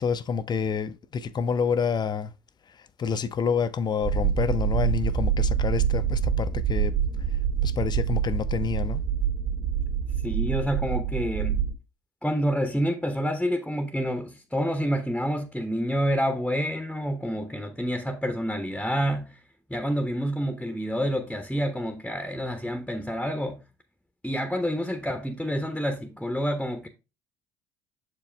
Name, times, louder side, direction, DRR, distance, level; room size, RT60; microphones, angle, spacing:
voice 1, 0.0-2.3 2.7-7.0 7.6-9.0, left 6 dB, 35° left, 0.6 m, -28 dB
sound 1, 4.0-11.7, right 8 dB, 55° right, 2.2 m, -26 dB
voice 2, 10.2-11.6 12.2-19.4 19.7-23.6 24.2-26.9, equal, 5° left, 0.9 m, -28 dB
6.8 x 4.9 x 3.3 m
hypercardioid pair, 65°, 12 cm